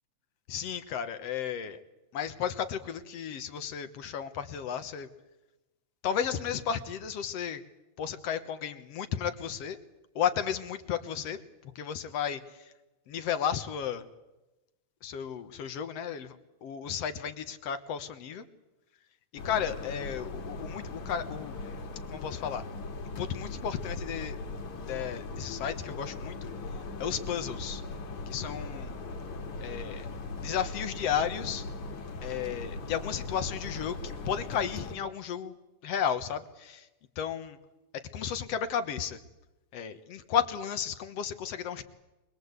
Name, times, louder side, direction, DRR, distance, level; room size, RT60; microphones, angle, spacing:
voice 1, 0.5-1.8 2.1-5.1 6.0-7.6 8.0-9.8 10.2-12.7 13.1-14.1 15.0-16.4 16.6-18.5 19.4-21.6 22.1-22.6 23.2-24.4 24.9-26.5 27.0-27.8 28.3-29.0 29.6-30.1 30.4-31.7 32.2-35.5 35.8-36.9 37.2-37.6 38.1-39.2 39.7-41.8, left 8 dB, 65° left, 10 dB, 2.2 m, -33 dB
sound 1, 19.4-35.0, left 3 dB, 80° left, 3.6 m, -39 dB
25.0 x 21.0 x 8.2 m, 1.0 s
omnidirectional pair, 3.3 m